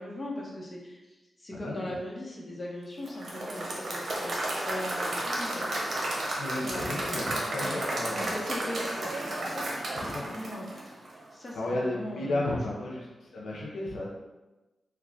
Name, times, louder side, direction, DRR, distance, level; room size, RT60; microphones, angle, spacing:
voice 1, 0.0-4.3 4.6-5.6 6.6-10.7 11.3-12.6, left 1 dB, 35° left, -3 dB, 0.9 m, -40 dB
voice 2, 1.5-1.9 6.4-8.3 10.0-10.3 11.5-13.0 13.3-14.1, left 1 dB, 80° left, -4 dB, 0.6 m, -33 dB
Applause / Crowd, 3.1-11.2, right 1 dB, 60° right, 0.8 m, -33 dB
3.1 x 2.3 x 3.6 m, 1.1 s
cardioid pair, 55°, 0 cm